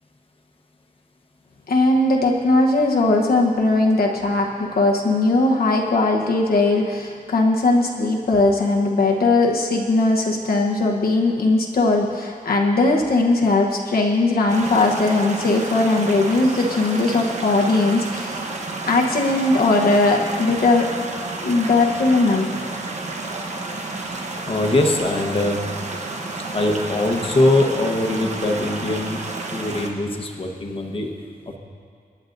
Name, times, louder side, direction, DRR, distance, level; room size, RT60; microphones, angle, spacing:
voice 1, 1.7-18.4 18.9-20.9 21.4-22.5, left 2 dB, 75° left, 0 dB, 1.0 m, -19 dB
sound 1, 14.5-29.9, right 3 dB, 45° right, 0.9 m, -31 dB
voice 2, 24.0-25.6 26.5-29.2 29.5-31.1, left 2 dB, 35° left, 2 dB, 1.1 m, -22 dB
25.5 x 9.7 x 2.6 m, 2.2 s
wide cardioid pair, 175°, 16 cm